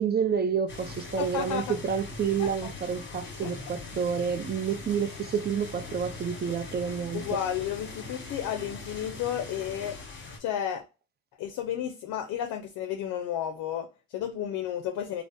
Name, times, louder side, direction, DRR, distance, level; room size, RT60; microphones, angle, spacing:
voice 1, 0.0-7.2, right 7 dB, 35° right, 0.4 m, -29 dB
sound 1, 0.7-10.4, left 3 dB, 40° left, 1.1 m, -41 dB
voice 2, 1.2-1.7 2.4-2.7 3.0-3.5 7.1-10.0 10.4-10.8 11.4-15.2, left 10 dB, 80° left, 0.5 m, -32 dB
3.4 x 2.0 x 2.6 m
cardioid pair, 90°, 30 cm